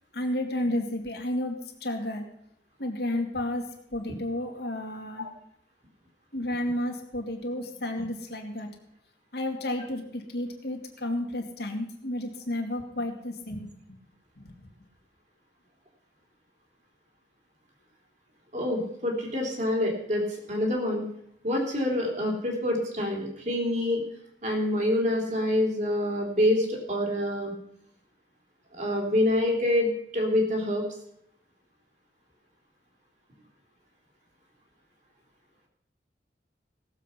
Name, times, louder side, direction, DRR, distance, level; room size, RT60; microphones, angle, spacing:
voice 1, 0.1-2.2 2.8-3.7 3.9-5.3 6.3-8.7 9.3-13.7 14.4-14.5, left 1 dB, 65° left, 3 dB, 2.1 m, -32 dB
voice 2, 18.5-20.2 20.5-21.0 21.4-24.0 24.4-27.5 28.8-30.8, left 1 dB, 45° right, 0 dB, 3.4 m, -26 dB
17.0 x 7.5 x 5.8 m, 0.73 s
head